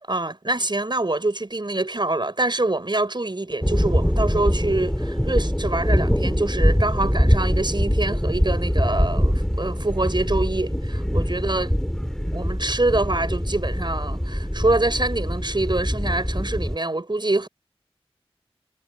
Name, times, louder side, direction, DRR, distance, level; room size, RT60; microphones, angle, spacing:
voice 1, 0.1-11.7 12.3-17.5, right 2 dB, 45° right, 6.2 m, -25 dB
sound 1, 3.6-16.8, equal, 5° left, 6.6 m, -23 dB
wide cardioid pair, 55°, 10 cm